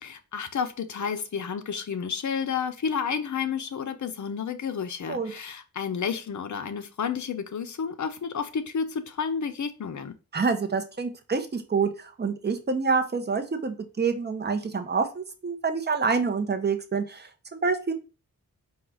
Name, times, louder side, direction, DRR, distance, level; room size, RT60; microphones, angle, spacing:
voice 1, 0.0-10.1, left 6 dB, 55° left, 0.6 m, -31 dB
voice 2, 10.3-17.9, right 5 dB, 30° right, 0.7 m, -27 dB
4.6 x 2.3 x 3.7 m
wide cardioid pair, 70°, 35 cm